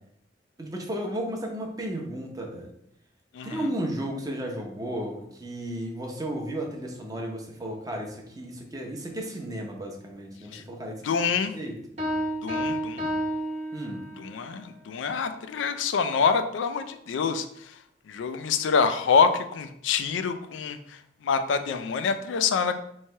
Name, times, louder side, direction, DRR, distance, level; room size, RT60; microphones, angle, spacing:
voice 1, 0.6-2.7 3.4-11.0 11.5-11.8 13.7-14.0, right 1 dB, 20° right, 1 dB, 0.7 m, -34 dB
voice 2, 11.0-11.5 12.4-13.1 14.2-17.8 18.1-22.7, left 6 dB, 85° left, 9 dB, 0.3 m, -26 dB
sound 1, 12.0-14.4, equal, 40° right, 1.1 m, -30 dB
3.1 x 2.8 x 4.3 m, 0.73 s
head